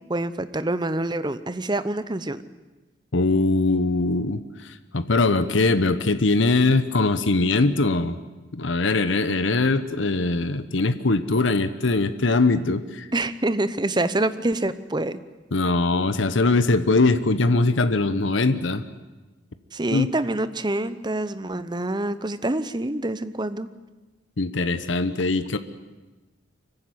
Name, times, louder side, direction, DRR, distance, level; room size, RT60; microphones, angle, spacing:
voice 1, 0.1-2.4 13.1-15.2 19.7-23.7, right 2 dB, 20° right, 13 dB, 0.8 m, -26 dB
voice 2, 3.1-8.2 8.5-13.1 15.5-18.8 19.9-20.1 24.4-25.6, left 3 dB, 75° left, 11 dB, 1.0 m, -21 dB
24.5 x 15.5 x 9.8 m, 1.2 s
head